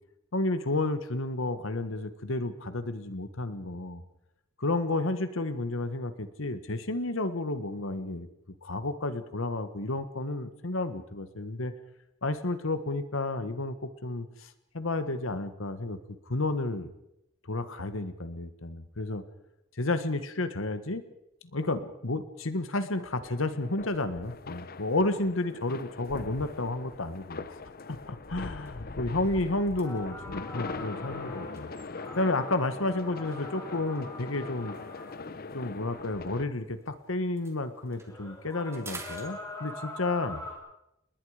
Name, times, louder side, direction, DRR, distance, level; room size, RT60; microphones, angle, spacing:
voice 1, 0.3-4.0 4.6-8.3 8.6-11.7 12.2-16.9 17.5-19.2 19.7-21.0 21.5-27.6 27.9-31.7 32.2-34.7 35.5-40.4, left 2 dB, 85° left, 11 dB, 1.5 m, -31 dB
sound 1, 23.2-36.4, left 3 dB, 50° left, 0.9 m, -41 dB
sound 2, 27.4-27.6 28.0-28.2 28.5-32.5 33.3-36.9 37.2-40.0, right 3 dB, 15° right, 3.1 m, -51 dB
sound 3, 29.8-35.3 37.0-37.1 37.9-40.5, left 2 dB, 15° left, 7.2 m, -44 dB
29.0 x 21.0 x 5.0 m, 0.85 s
head